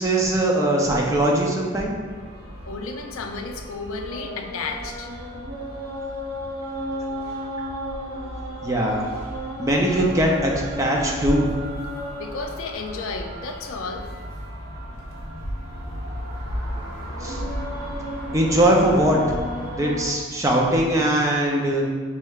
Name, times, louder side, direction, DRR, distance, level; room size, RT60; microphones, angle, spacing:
voice 1, 0.0-1.9 8.6-9.1 9.6-11.5 17.2-17.4 18.3-19.2 19.7-21.8, right 1 dB, 15° right, -1 dB, 0.5 m, -20 dB
sound 1, 2.0-20.1, equal, 90° right, 1.2 m, -33 dB
voice 2, 2.7-5.1 12.2-14.1, left 4 dB, 65° left, 4 dB, 0.4 m, -32 dB
5.5 x 3.2 x 2.3 m, 1.5 s
head